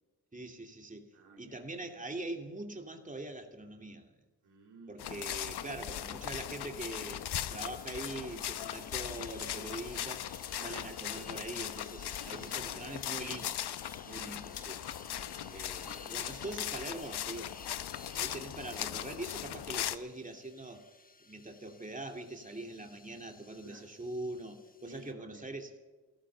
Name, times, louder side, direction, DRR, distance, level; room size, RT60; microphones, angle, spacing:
voice 1, 0.3-1.1 1.4-4.1 4.9-10.2 10.6-13.7 14.0-14.8 15.5-17.6 18.1-20.8 21.2-25.7, right 2 dB, 20° right, 3 dB, 2.7 m, -43 dB
voice 2, 1.1-1.7 4.4-5.2 5.6-5.9 10.5-10.9 12.2-13.0 14.0-14.3 14.9-16.9 23.6-23.9 24.8-25.5, right 4 dB, 90° right, 1 dB, 2.9 m, -56 dB
sound 1, 5.0-20.0, left 11 dB, 80° left, 0.8 m, -39 dB
sound 2, 6.9-25.1, left 3 dB, 20° left, 1.0 m, -56 dB
14.0 x 14.0 x 7.0 m, 1.2 s
cardioid pair, 55°, 39 cm